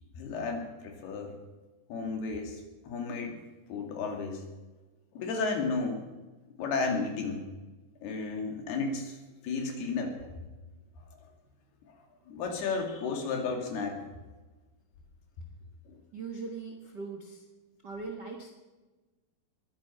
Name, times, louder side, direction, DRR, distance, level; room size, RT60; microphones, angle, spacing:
voice 1, 0.1-1.4 1.9-3.4 3.7-4.4 5.2-6.1 6.6-7.4 8.0-9.2 9.4-10.1 11.9-12.0 12.3-14.0 15.9-16.0, left 4 dB, 75° left, 3 dB, 4.2 m, -33 dB
voice 2, 16.1-17.4 17.8-18.5, right 4 dB, 85° right, 2 dB, 0.9 m, -40 dB
21.5 x 9.5 x 5.7 m, 1.2 s
omnidirectional pair, 4.6 m